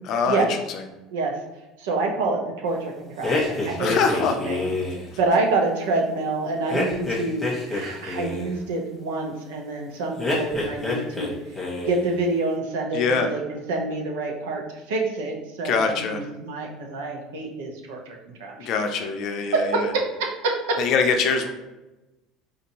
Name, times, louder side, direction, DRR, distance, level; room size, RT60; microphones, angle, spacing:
voice 1, 0.0-0.8 3.8-4.4 12.9-13.3 15.6-16.2 18.6-19.9 20.8-21.5, left 5 dB, 60° left, 5 dB, 0.5 m, -23 dB
voice 2, 1.8-4.7 5.2-11.4 11.8-18.0 18.4-18.7 19.5-20.8, right 3 dB, 85° right, 1 dB, 0.7 m, -27 dB
sound 1, 3.2-5.1 6.7-8.5 10.2-11.3 11.5-12.1, left 2 dB, 5° left, 1.2 m, -27 dB
3.8 x 2.6 x 2.8 m, 1.0 s
supercardioid pair, 100°, 0 cm